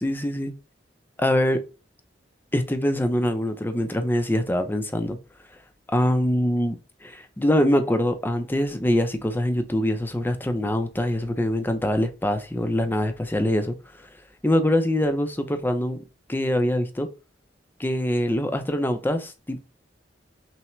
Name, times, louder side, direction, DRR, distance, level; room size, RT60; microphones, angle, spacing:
voice 1, 0.0-0.5 1.2-1.6 2.5-5.2 5.9-13.8 14.4-16.0 16.3-17.1 17.8-19.6, left 1 dB, 10° left, 0.5 m, -24 dB
5.6 x 2.1 x 3.1 m
head